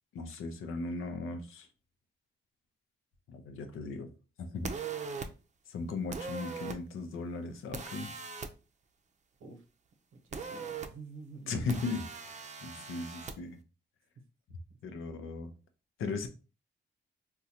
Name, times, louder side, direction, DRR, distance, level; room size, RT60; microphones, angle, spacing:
voice 1, 0.1-1.7 3.3-4.1 4.4-4.7 5.0-5.1 5.7-8.1 11.5-13.6 14.8-15.5 16.0-16.3, left 3 dB, 85° left, 0.6 m, -37 dB
sound 1, 4.6-5.3 6.1-6.8 7.7-8.5 10.3-10.9 11.7-13.3, right 5 dB, 35° right, 0.5 m, -40 dB
voice 2, 10.1-11.5 12.6-12.9 14.5-14.8, right 4 dB, 85° right, 0.7 m, -50 dB
3.7 x 2.2 x 2.8 m
cardioid pair, 75°, 21 cm